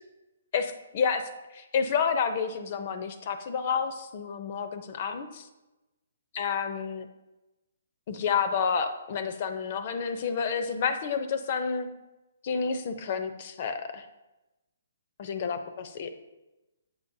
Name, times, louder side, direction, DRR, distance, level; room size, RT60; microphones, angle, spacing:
voice 1, 0.5-1.2 1.5-5.5 6.3-7.1 8.1-11.9 12.4-14.1 15.2-16.3, left 6 dB, 35° left, 9 dB, 0.6 m, -30 dB
9.1 x 7.9 x 2.7 m, 1.0 s
hypercardioid pair, 170°, 0 cm